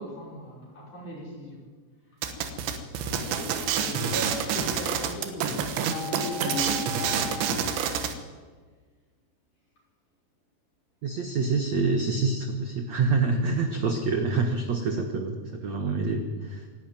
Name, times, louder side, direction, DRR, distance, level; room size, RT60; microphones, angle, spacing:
voice 1, 0.0-1.7 2.5-7.9, equal, 45° left, -3 dB, 6.6 m, -38 dB
sound 1, 2.2-8.1, right 7 dB, 90° right, 3.7 m, -28 dB
sound 2, 5.9-7.5, left 8 dB, 65° left, 3.1 m, -37 dB
voice 2, 11.0-16.7, right 4 dB, 60° right, 4 dB, 1.9 m, -26 dB
26.0 x 11.0 x 9.1 m, 1.5 s
omnidirectional pair, 5.0 m